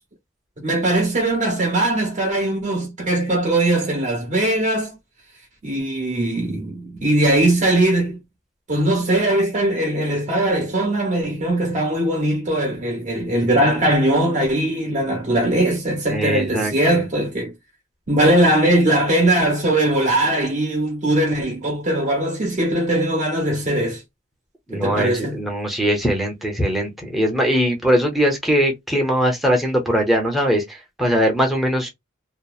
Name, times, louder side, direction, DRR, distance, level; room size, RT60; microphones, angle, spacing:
voice 1, 0.6-5.0 5.6-8.2 8.7-17.5 18.1-24.0 24.7-25.4, right 1 dB, 40° right, 1.0 m, -20 dB
voice 2, 16.1-17.0 24.7-31.9, equal, ahead, 0.7 m, -21 dB
2.8 x 2.0 x 2.3 m
head